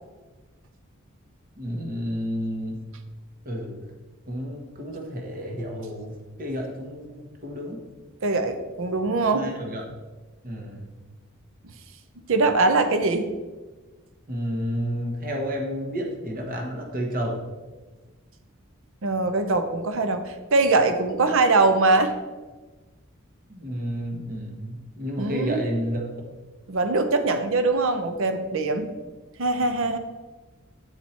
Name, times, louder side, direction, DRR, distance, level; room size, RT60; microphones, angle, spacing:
voice 1, 1.6-2.8 3.4-3.8 4.3-7.8 9.3-9.8 10.4-11.0 14.3-17.4 23.5-26.1, equal, 40° right, 1 dB, 1.1 m, -31 dB
voice 2, 8.2-9.4 12.3-13.3 19.0-22.1 25.2-25.6 26.7-28.9 29.4-30.0, right 3 dB, 65° right, 8 dB, 0.7 m, -22 dB
8.2 x 4.5 x 4.3 m, 1.2 s
head